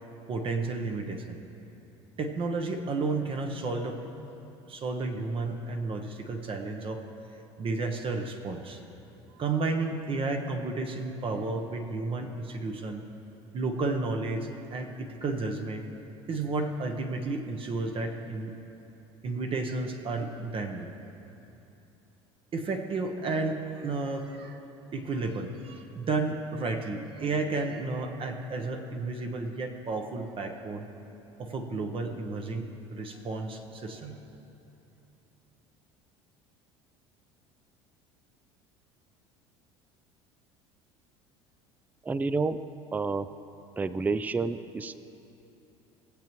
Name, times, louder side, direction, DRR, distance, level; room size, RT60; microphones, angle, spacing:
voice 1, 0.3-1.4 2.2-4.0 4.7-7.0 7.6-8.8 9.4-13.0 13.5-15.8 16.3-18.5 19.2-20.9 22.5-24.6 24.9-30.9 31.4-34.2, right 3 dB, 40° right, 4 dB, 0.9 m, -32 dB
voice 2, 42.0-42.6 42.9-43.3 43.8-45.0, right 4 dB, 10° right, 14 dB, 0.3 m, -29 dB
18.0 x 7.4 x 3.1 m, 2.9 s
hypercardioid pair, 75°, 14 cm